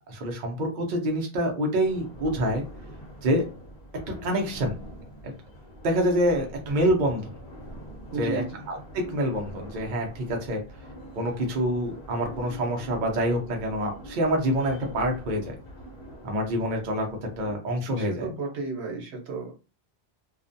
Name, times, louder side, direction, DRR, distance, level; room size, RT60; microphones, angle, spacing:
voice 1, 0.1-2.6 3.2-3.5 4.1-4.8 5.2-5.3 5.8-7.3 8.2-10.6 11.1-15.6 16.2-17.1 17.4-18.2, equal, 50° right, 2 dB, 0.7 m, -26 dB
sound 1, 1.8-17.6, equal, 50° left, 1.0 m, -44 dB
voice 2, 8.1-8.6 18.0-19.8, right 3 dB, 80° right, 0 dB, 1.1 m, -34 dB
2.4 x 2.1 x 2.6 m, 0.31 s
omnidirectional pair, 1.1 m